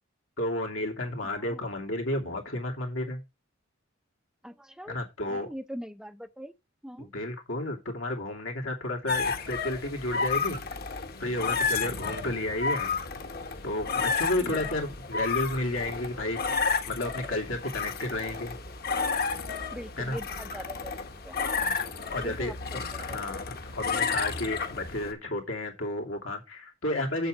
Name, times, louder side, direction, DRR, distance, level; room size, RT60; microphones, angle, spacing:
voice 1, 0.4-3.2 4.9-5.5 7.0-10.6 11.2-13.0 13.6-16.4 16.9-18.6 20.0-20.2 22.1-27.3, left 1 dB, 80° left, 2.9 m, -32 dB
voice 2, 1.2-1.6 4.4-5.0 5.3-6.5 6.8-7.1 14.4-14.7 19.7-23.2, equal, 5° right, 0.5 m, -43 dB
sound 1, 9.1-25.1, left 5 dB, 50° left, 1.3 m, -32 dB
7.8 x 7.8 x 4.9 m
head